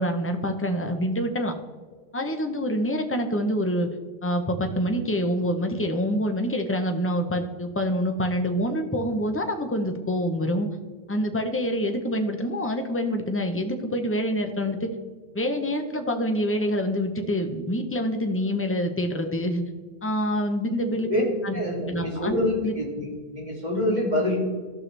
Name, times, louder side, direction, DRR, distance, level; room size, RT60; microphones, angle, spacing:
voice 1, 0.0-1.5 2.1-3.9 4.2-10.7 11.1-14.9 15.3-19.6 20.0-21.1 21.4-21.6 21.9-22.4 22.6-22.7, equal, 15° left, 5 dB, 0.8 m, -26 dB
voice 2, 21.5-24.4, left 1 dB, 45° right, -4 dB, 2.5 m, -26 dB
14.5 x 5.8 x 3.3 m, 1.5 s
omnidirectional pair, 1.0 m